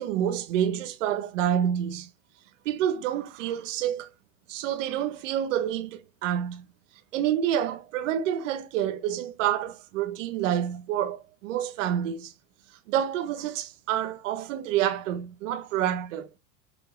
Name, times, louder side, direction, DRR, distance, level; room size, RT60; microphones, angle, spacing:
voice 1, 0.0-2.1 2.6-4.1 4.5-6.6 7.1-12.3 12.9-16.3, right 10 dB, 85° right, 1.5 m, -28 dB
7.9 x 3.7 x 4.6 m
supercardioid pair, 125°, 37 cm